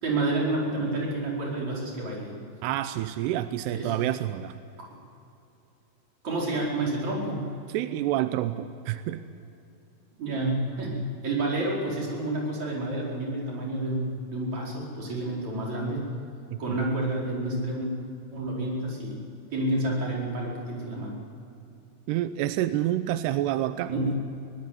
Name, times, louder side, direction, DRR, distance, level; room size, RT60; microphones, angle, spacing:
voice 1, 0.0-2.3 3.7-3.9 6.2-7.4 10.2-11.0 11.2-16.1 16.6-17.9 18.3-19.2 19.5-21.1 23.9-24.1, right 2 dB, 45° right, -3 dB, 6.0 m, -29 dB
voice 2, 2.6-4.6 7.7-9.2 16.5-16.8 22.1-23.9, right 13 dB, 90° right, 11 dB, 2.8 m, -28 dB
22.5 x 18.5 x 9.4 m, 2.7 s
omnidirectional pair, 4.7 m